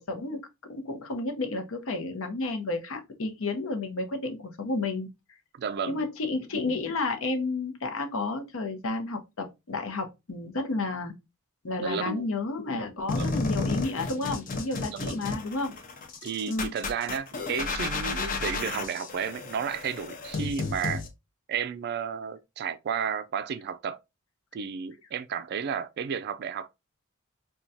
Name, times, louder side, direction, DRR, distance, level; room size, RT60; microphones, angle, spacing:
voice 1, 0.1-5.1 5.9-11.1 11.6-15.8 16.5-16.7, left 3 dB, 70° left, 0.8 m, -31 dB
voice 2, 5.6-6.1 11.8-12.3 13.1-13.4 14.9-15.2 16.2-21.0 21.5-24.0 24.5-26.7, right 7 dB, 50° right, 0.3 m, -32 dB
sound 1, 13.1-21.1, left 3 dB, 40° left, 0.6 m, -32 dB
4.4 x 2.3 x 2.6 m
head